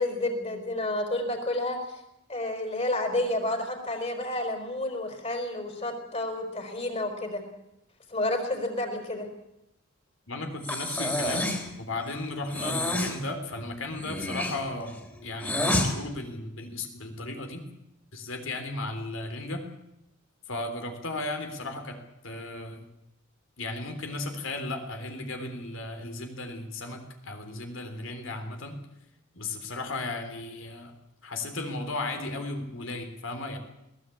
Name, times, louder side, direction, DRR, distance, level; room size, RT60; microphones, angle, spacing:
voice 1, 0.0-2.0 2.3-7.4 8.1-9.3, left 1 dB, 30° left, 5 dB, 4.6 m, -30 dB
voice 2, 10.3-17.6 18.1-19.6 20.5-22.8 23.6-28.8 29.3-30.9 31.2-33.6, left 2 dB, 70° left, 6 dB, 3.6 m, -35 dB
Breathing, 10.6-11.7 12.5-13.2 13.9-15.9, left 1 dB, 10° left, 3.4 m, -29 dB
21.5 x 17.5 x 8.6 m, 0.86 s
head